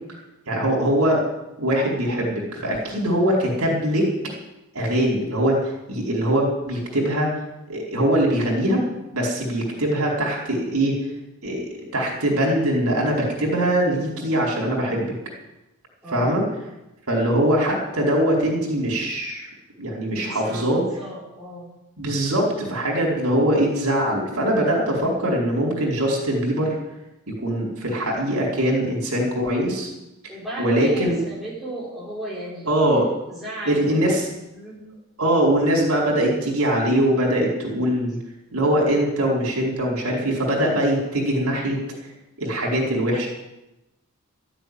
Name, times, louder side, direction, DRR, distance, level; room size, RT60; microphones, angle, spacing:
voice 1, 0.5-1.2 1.6-4.1 4.7-7.3 7.7-8.8 9.1-11.0 11.4-11.7 11.9-15.1 16.1-16.4 17.1-19.5 19.8-20.8 22.0-26.8 27.3-29.9 30.6-31.2 32.7-33.1 33.6-34.3 35.2-38.2 38.5-41.8 42.4-43.3, right 1 dB, 70° right, -2 dB, 4.8 m, -22 dB
voice 2, 16.0-16.4 20.2-21.7 30.3-32.7 33.3-34.8, right 1 dB, ahead, -7 dB, 5.2 m, -35 dB
13.5 x 8.9 x 9.6 m, 0.96 s
head